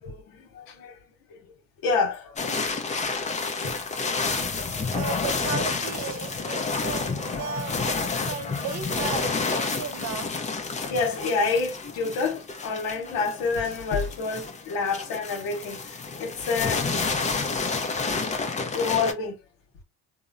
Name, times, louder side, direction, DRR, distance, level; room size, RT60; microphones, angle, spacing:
voice 1, 0.0-1.0 1.3-1.4 1.8-2.6 10.9-15.8 16.2-16.8 18.7-19.4, left 4 dB, 70° left, 1.0 m, -28 dB
sound 1, 2.4-19.1, left 4 dB, 20° left, 0.5 m, -30 dB
voice 2, 4.9-10.3, right 6 dB, 50° right, 0.7 m, -35 dB
2.8 x 2.1 x 2.4 m
supercardioid pair, 95°, 35 cm